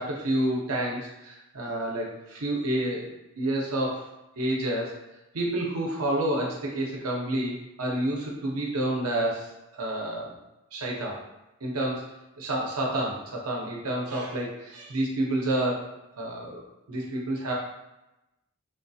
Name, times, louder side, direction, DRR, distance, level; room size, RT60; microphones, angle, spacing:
voice 1, 0.0-3.1 3.4-4.1 4.4-4.9 5.3-9.5 9.7-10.3 10.7-11.2 11.6-12.0 12.4-15.8 16.2-16.6 16.9-17.5, right 1 dB, 85° right, -2 dB, 0.8 m, -29 dB
3.6 x 2.3 x 2.7 m, 0.94 s
head